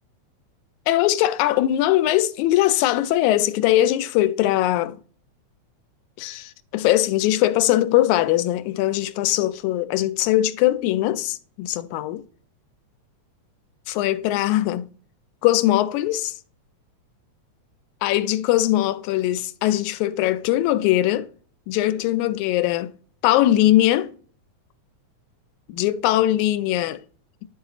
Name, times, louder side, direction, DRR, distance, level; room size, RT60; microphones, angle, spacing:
voice 1, 0.9-5.0 6.2-12.2 13.9-14.9 15.4-16.3 18.0-21.3 21.7-22.9 23.2-24.1 25.7-27.0, left 14 dB, 85° left, 2.0 m, -21 dB
11.5 x 3.9 x 2.4 m
omnidirectional pair, 3.3 m